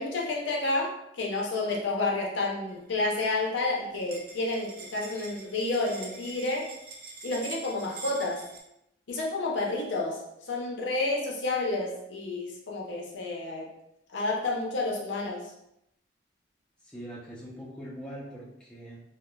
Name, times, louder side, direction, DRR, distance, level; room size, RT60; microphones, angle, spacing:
voice 1, 0.0-6.7 7.2-8.4 9.1-10.2 10.5-13.7 14.1-15.4, left 2 dB, 70° left, -1 dB, 0.5 m, -30 dB
sound 1, 2.7-3.2 3.6-3.7 3.8-8.6, right 4 dB, 50° right, 0.4 m, -44 dB
voice 2, 16.8-19.0, equal, 5° left, -6 dB, 0.4 m, -42 dB
2.9 x 2.0 x 2.2 m, 0.80 s
head